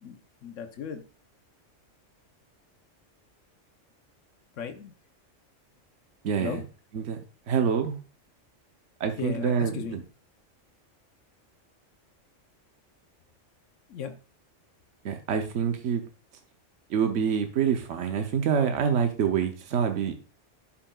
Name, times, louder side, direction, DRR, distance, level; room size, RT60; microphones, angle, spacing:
voice 1, 0.0-1.0 4.6-4.9 6.4-6.6 9.2-10.0 13.9-14.2, left 7 dB, 80° left, 1.2 m, -36 dB
voice 2, 6.2-6.6 6.9-7.2 7.5-8.0 9.0-9.7 15.0-16.0 16.9-20.1, right 7 dB, 75° right, 1.1 m, -26 dB
11.5 x 5.8 x 2.3 m
omnidirectional pair, 1.3 m